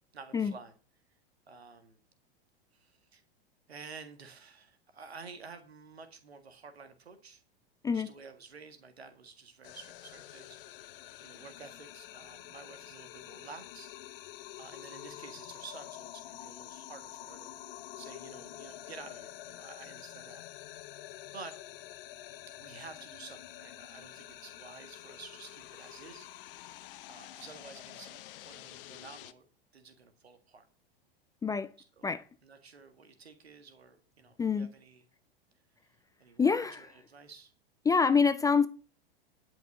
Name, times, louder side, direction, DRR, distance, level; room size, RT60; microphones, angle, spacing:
voice 1, 0.1-0.7 1.5-2.0 2.7-3.2 3.7-7.4 7.9-10.6 10.9-11.0 11.2-13.9 14.6-17.5 18.0-20.4 21.3-21.6 22.5-26.3 27.1-29.5 29.7-30.7 31.8-32.1 32.4-35.1 36.2-37.5, right 5 dB, 85° right, 1.9 m, -51 dB
sound 1, 9.6-29.3, left 14 dB, 60° left, 0.9 m, -48 dB
voice 2, 36.4-36.8 37.8-38.7, left 5 dB, 10° left, 0.4 m, -26 dB
11.0 x 5.9 x 7.5 m
hypercardioid pair, 100°, 31 cm